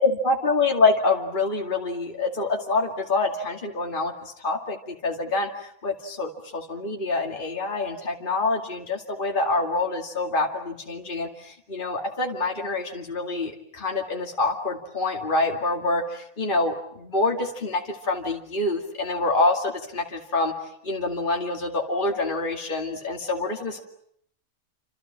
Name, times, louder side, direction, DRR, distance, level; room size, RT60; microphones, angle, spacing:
voice 1, 0.0-20.5 20.8-23.8, left 3 dB, 35° left, 1 dB, 2.6 m, -26 dB
28.5 x 27.0 x 7.5 m, 0.69 s
omnidirectional pair, 1.5 m